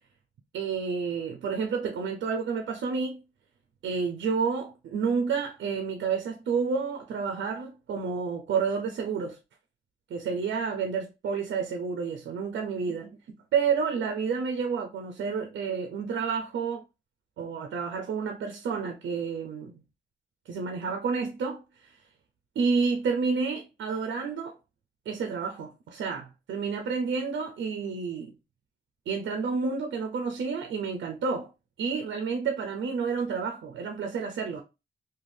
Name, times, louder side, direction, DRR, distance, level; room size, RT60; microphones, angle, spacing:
voice 1, 0.5-3.2 3.8-9.4 10.1-13.2 13.5-16.8 17.4-19.8 20.5-22.0 22.6-24.6 25.1-28.3 29.1-31.5 31.8-34.6, right 5 dB, 85° right, 0.5 m, -30 dB
2.6 x 2.2 x 3.2 m
cardioid pair, 65°, 19 cm